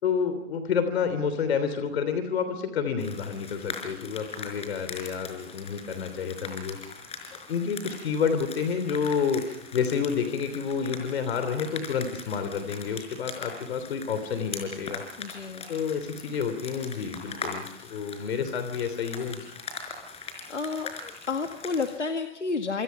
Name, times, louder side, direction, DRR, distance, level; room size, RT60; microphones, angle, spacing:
voice 1, 0.0-6.8 7.5-15.0 15.7-19.5, left 6 dB, 60° left, 10 dB, 3.4 m, -29 dB
sound 1, 3.0-22.0, left 5 dB, 15° left, 4.9 m, -41 dB
voice 2, 15.2-15.7 20.5-22.8, left 4 dB, 85° left, 6 dB, 2.1 m, -31 dB
27.5 x 26.0 x 5.8 m, 0.81 s
figure-of-eight pair, 120°, 35 cm